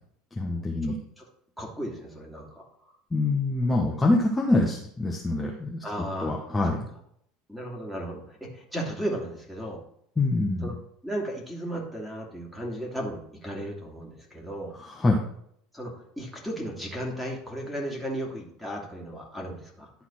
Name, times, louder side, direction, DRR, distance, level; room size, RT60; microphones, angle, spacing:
voice 1, 0.4-1.0 3.1-5.8 6.2-6.8 10.2-10.7 14.8-15.2, left 2 dB, 15° left, -1 dB, 1.2 m, -25 dB
voice 2, 1.6-2.6 5.8-6.3 7.5-9.8 10.6-10.7 11.0-14.8 15.7-19.9, right 1 dB, ahead, -1 dB, 2.7 m, -35 dB
11.5 x 4.1 x 4.5 m, 0.70 s
figure-of-eight pair, 70°, 0 cm